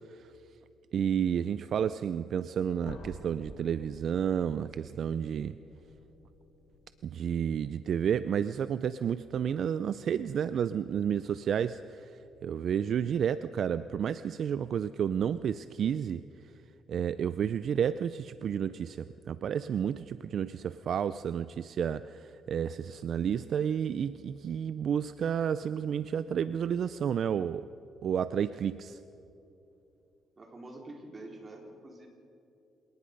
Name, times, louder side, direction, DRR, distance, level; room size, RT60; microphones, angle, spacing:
voice 1, 0.9-5.6 7.0-12.1 12.4-16.2 16.9-27.7 28.0-29.0, right 8 dB, 60° right, 14 dB, 0.4 m, -31 dB
sound 1, 2.8-7.6, left 3 dB, 85° left, 3.9 m, -51 dB
voice 2, 30.4-32.1, right 2 dB, 30° right, 1 dB, 4.2 m, -46 dB
27.0 x 18.5 x 5.4 m, 2.8 s
cardioid pair, 95°, 0 cm